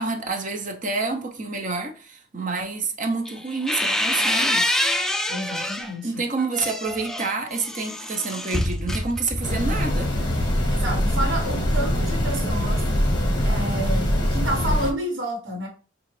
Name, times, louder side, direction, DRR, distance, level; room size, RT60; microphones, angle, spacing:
voice 1, 0.0-5.1 6.0-10.1, right 3 dB, 40° right, 0.7 m, -28 dB
sound 1, 3.2-5.9 6.4-9.7, left 1 dB, ahead, 0.3 m, -26 dB
voice 2, 5.3-6.2 10.7-12.8 13.4-15.7, right 1 dB, 75° right, 1.3 m, -29 dB
sound 2, 9.4-14.9, equal, 25° left, 0.9 m, -23 dB
4.8 x 2.4 x 3.2 m
head